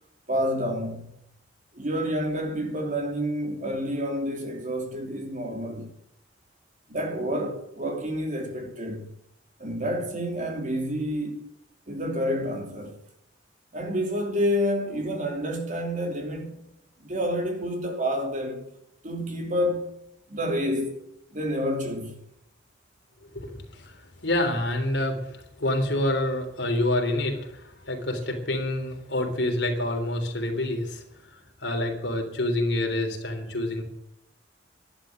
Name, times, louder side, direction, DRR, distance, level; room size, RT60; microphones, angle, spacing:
voice 1, 0.3-1.1 1.7-5.9 6.9-9.1 9.6-11.5 11.9-13.0 13.7-16.6 17.0-18.7 19.0-20.0 20.3-20.9 21.3-22.1, equal, 45° right, 2.9 m, -29 dB
voice 2, 23.2-33.8, left 1 dB, 70° left, 3.5 m, -28 dB
12.0 x 11.5 x 7.7 m
head